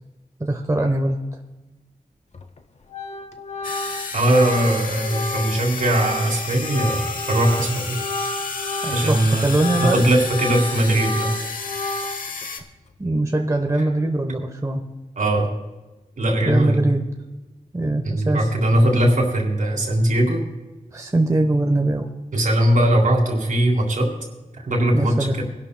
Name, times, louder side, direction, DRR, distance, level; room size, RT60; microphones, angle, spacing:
voice 1, 0.4-1.2 8.8-10.0 13.0-14.8 16.4-17.0 17.7-18.5 20.9-22.1 24.9-25.4, right 2 dB, 25° right, 3 dB, 1.0 m, -22 dB
Organ, 2.3-2.6 2.9-9.2 9.5-12.4, left 2 dB, 55° left, 0.8 m, -31 dB
sound 1, 3.6-12.6, left 4 dB, 85° left, 1.0 m, -32 dB
voice 2, 4.1-8.0 8.9-11.3 15.2-15.5 16.2-16.9 18.0-20.4 22.3-24.1 24.5-25.4, right 1 dB, 75° right, 1 dB, 3.2 m, -20 dB
24.0 x 11.5 x 2.2 m, 1.1 s
wide cardioid pair, 95°, 14 cm